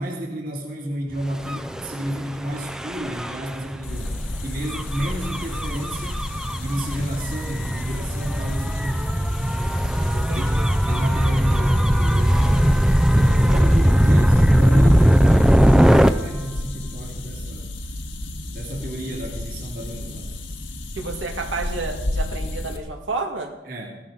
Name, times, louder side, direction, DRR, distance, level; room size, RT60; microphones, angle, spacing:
voice 1, 0.0-6.2 6.6-9.1 10.3-10.5 10.9-12.8 13.1-17.7 18.5-20.3 23.7-24.0, right 1 dB, 50° right, -1 dB, 2.4 m, -31 dB
Gull seagull / Waves surf / Siren, 1.4-16.1, equal, 5° right, 0.4 m, -19 dB
sound 1, 3.8-22.8, left 1 dB, 90° left, 1.7 m, -32 dB
voice 2, 10.1-10.7 21.0-23.5, right 3 dB, 85° right, 3 dB, 1.9 m, -30 dB
16.0 x 14.0 x 3.9 m, 1.0 s
head